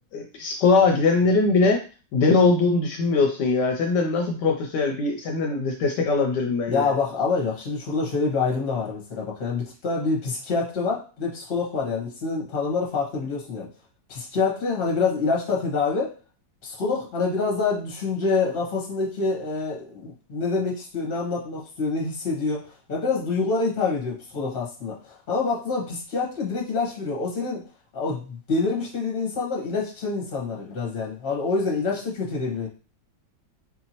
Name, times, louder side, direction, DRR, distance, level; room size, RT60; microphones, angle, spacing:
voice 1, 0.1-1.8 2.1-6.9, left 3 dB, 75° left, 3 dB, 1.1 m, -21 dB
voice 2, 6.7-13.7 14.1-16.1 16.6-22.6 22.9-27.6 27.9-32.7, left 4 dB, 35° left, -2 dB, 1.1 m, -26 dB
4.1 x 2.7 x 2.9 m, 0.36 s
omnidirectional pair, 2.0 m